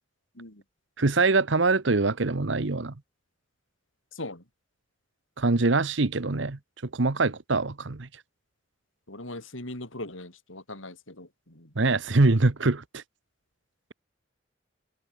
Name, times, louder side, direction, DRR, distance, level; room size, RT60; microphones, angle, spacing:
voice 1, 1.0-2.9 5.4-6.6 6.9-8.1 11.8-13.0, right 3 dB, 65° right, 1.1 m, -23 dB
voice 2, 4.1-4.4 9.1-11.7, left 2 dB, 80° left, 5.8 m, -40 dB
head